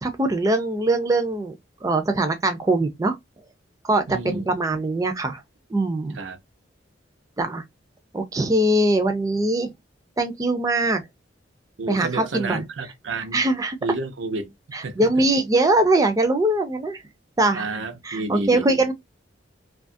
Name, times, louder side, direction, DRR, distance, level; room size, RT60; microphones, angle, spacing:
voice 1, 0.0-1.5 1.8-3.2 3.8-5.4 5.7-6.2 7.4-7.6 8.1-9.7 10.2-11.0 11.9-12.7 13.2-13.8 14.7-17.0 17.4-17.8 18.0-18.9, right 2 dB, 20° right, 0.4 m, -22 dB
voice 2, 4.1-4.5 6.1-6.4 11.8-13.4 13.8-14.5 14.8-14.9 17.5-18.8, right 3 dB, 85° right, 0.6 m, -30 dB
2.7 x 2.3 x 2.5 m
head